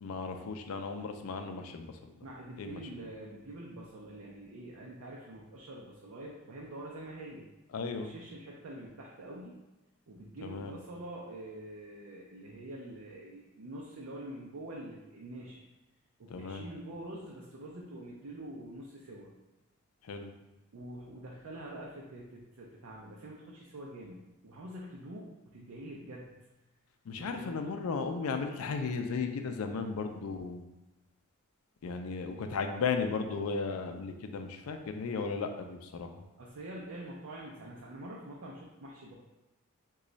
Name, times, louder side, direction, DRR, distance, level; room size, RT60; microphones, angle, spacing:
voice 1, 0.0-2.1 2.6-2.8 7.7-8.1 10.4-10.7 16.3-16.6 20.1-20.3 27.1-30.6 31.8-36.1, left 4 dB, 90° left, 6 dB, 0.4 m, -35 dB
voice 2, 2.2-7.4 7.9-9.6 10.1-15.6 16.2-19.3 20.7-24.2 24.4-26.3 27.2-27.6 32.3-32.4 36.4-39.1, right 1 dB, 75° right, -3 dB, 0.5 m, -45 dB
3.0 x 2.3 x 3.9 m, 1.0 s
head